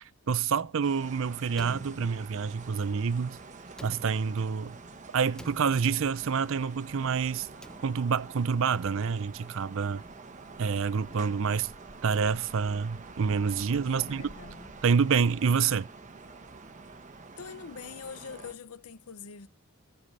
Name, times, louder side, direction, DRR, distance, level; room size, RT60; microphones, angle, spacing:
voice 1, 0.0-3.4 3.8-4.8 5.1-7.5 7.8-10.0 10.6-11.7 12.0-14.2 14.8-15.9, right 6 dB, 60° right, 0.5 m, -27 dB
sound 1, 0.8-18.5, right 3 dB, 35° right, 1.0 m, -47 dB
Slam, 1.5-2.7 3.7-4.6 5.3-6.2 7.4-8.3, equal, 5° left, 0.7 m, -50 dB
voice 2, 13.8-14.7 17.4-19.5, left 6 dB, 75° left, 0.7 m, -44 dB
14.5 x 6.8 x 5.5 m
head